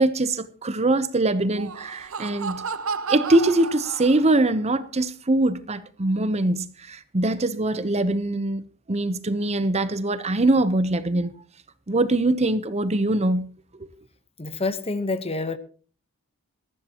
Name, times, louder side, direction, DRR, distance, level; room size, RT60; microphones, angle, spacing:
voice 1, 0.0-2.6 3.1-11.3 11.9-13.5, right 2 dB, 30° right, 0.8 m, -23 dB
Laughter, 1.4-4.6, right 5 dB, 65° right, 0.7 m, -32 dB
voice 2, 14.4-15.6, left 3 dB, 25° left, 1.0 m, -27 dB
19.0 x 14.5 x 3.0 m
head